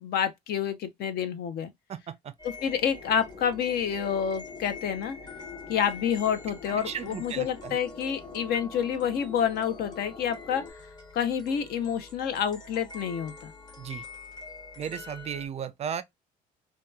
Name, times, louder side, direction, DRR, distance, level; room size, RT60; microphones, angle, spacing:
voice 1, 0.0-1.7 2.6-5.2 5.7-10.6 11.1-13.5, left 8 dB, 70° left, 0.6 m, -28 dB
voice 2, 1.9-2.3 6.7-7.8 13.8-14.0 14.8-16.0, right 8 dB, 40° right, 0.4 m, -35 dB
sound 1, 2.4-15.5, left 3 dB, 25° left, 0.7 m, -46 dB
sound 2, 2.6-10.7, left 5 dB, 40° left, 1.1 m, -46 dB
2.8 x 2.2 x 2.2 m
cardioid pair, 110°, 17 cm